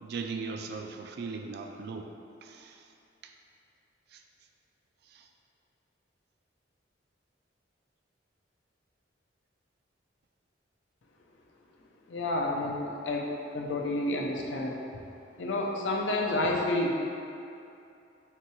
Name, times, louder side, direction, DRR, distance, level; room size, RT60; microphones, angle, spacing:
voice 1, 0.0-2.1 2.4-2.7, right 4 dB, 55° right, 4 dB, 0.3 m, -38 dB
voice 2, 12.1-13.3 13.5-14.8 15.4-16.9, left 2 dB, 75° left, -1 dB, 0.5 m, -29 dB
5.7 x 2.3 x 3.0 m, 2.6 s
head